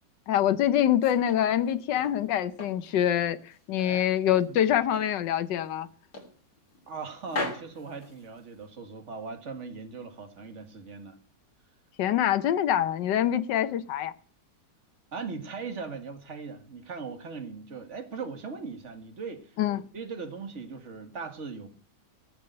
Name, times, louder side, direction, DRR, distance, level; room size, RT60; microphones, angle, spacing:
voice 1, 0.3-5.9 12.0-14.1 19.6-19.8, left 11 dB, 85° left, 1.5 m, -25 dB
sound 1, 0.8-2.2 2.6-4.0 4.3-5.2 5.5-5.7 6.1-7.0 7.2-8.7, left 2 dB, 70° left, 3.7 m, -39 dB
voice 2, 4.5-4.8 6.9-11.2 15.1-19.6 19.9-21.7, right 5 dB, 45° right, 2.2 m, -39 dB
17.0 x 7.1 x 7.8 m
omnidirectional pair, 1.9 m